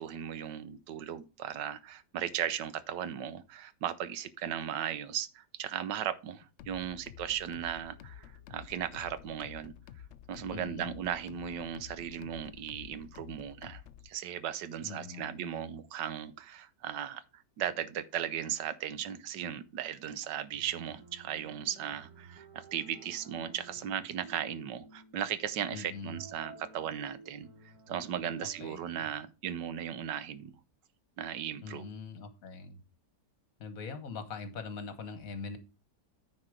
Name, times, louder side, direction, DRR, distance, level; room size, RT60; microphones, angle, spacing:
voice 1, 0.0-9.7 10.3-30.5 31.2-31.8, right 9 dB, 85° right, 1.4 m, -37 dB
sound 1, 6.6-14.1, left 9 dB, 80° left, 0.6 m, -51 dB
voice 2, 10.5-10.9 14.8-15.7 25.7-26.2 28.6-29.1 31.6-32.8 33.6-35.6, left 4 dB, 55° left, 1.5 m, -42 dB
sound 2, 20.5-28.7, right 3 dB, 60° right, 2.8 m, -54 dB
9.6 x 4.7 x 5.0 m
omnidirectional pair, 1.8 m